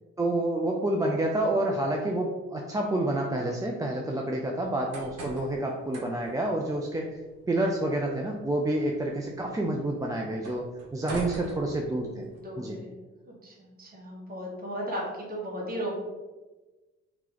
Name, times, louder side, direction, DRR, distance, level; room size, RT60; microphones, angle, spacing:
voice 1, 0.2-7.2 7.5-12.2 12.6-12.8, right 1 dB, 10° right, 0 dB, 0.3 m, -28 dB
sound 1, 4.6-12.4, right 1 dB, 55° right, 1.2 m, -45 dB
voice 2, 12.4-12.9 13.3-15.9, equal, 30° right, -3 dB, 1.4 m, -36 dB
2.9 x 2.9 x 3.8 m, 1.2 s
cardioid pair, 90°, 30 cm